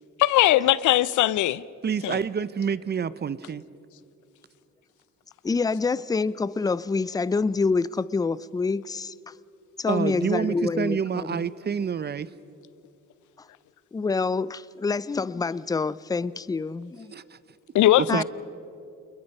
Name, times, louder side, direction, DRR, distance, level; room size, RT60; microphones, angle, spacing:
voice 1, 0.2-1.6 2.0-2.2 17.7-18.2, left 14 dB, 75° left, 0.6 m, -20 dB
voice 2, 1.8-3.6 9.9-12.3 17.1-17.4 18.0-18.2, right 7 dB, 35° right, 0.6 m, -28 dB
voice 3, 5.4-9.1 9.8-11.4 13.9-17.1 18.1-18.2, left 4 dB, 15° left, 0.4 m, -27 dB
28.0 x 21.0 x 5.4 m
cardioid pair, 90°, 30 cm